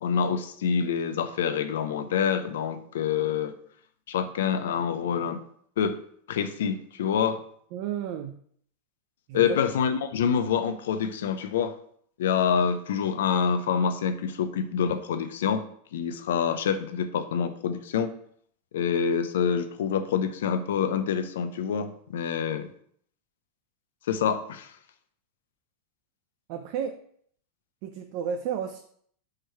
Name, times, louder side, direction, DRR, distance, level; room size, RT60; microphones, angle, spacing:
voice 1, 0.0-3.5 4.1-5.4 5.8-6.0 6.3-7.4 9.3-11.7 12.2-15.6 15.9-18.1 18.7-22.7 24.1-24.7, left 7 dB, 80° left, 10 dB, 0.6 m, -26 dB
voice 2, 7.7-8.4 9.3-9.6 26.5-27.0 27.8-28.8, right 8 dB, 55° right, 6 dB, 0.5 m, -32 dB
4.9 x 4.6 x 4.5 m, 0.63 s
hypercardioid pair, 110°, 0 cm